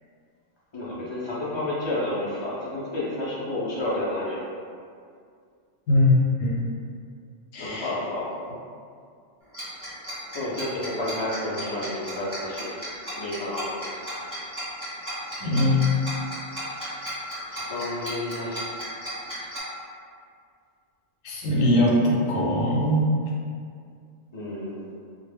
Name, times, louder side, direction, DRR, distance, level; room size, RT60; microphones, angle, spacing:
voice 1, 0.7-4.4 7.6-8.3 10.3-12.7 13.2-13.9 17.5-18.6 24.3-24.9, left 1 dB, 40° left, -9 dB, 0.4 m, -30 dB
voice 2, 5.9-6.7 7.5-7.9 15.4-15.9 21.2-23.1, left 1 dB, 90° left, -3 dB, 1.0 m, -21 dB
Tick-tock, 9.5-19.6, equal, 5° left, 1.1 m, -35 dB
2.3 x 2.2 x 3.3 m, 2.3 s
omnidirectional pair, 1.3 m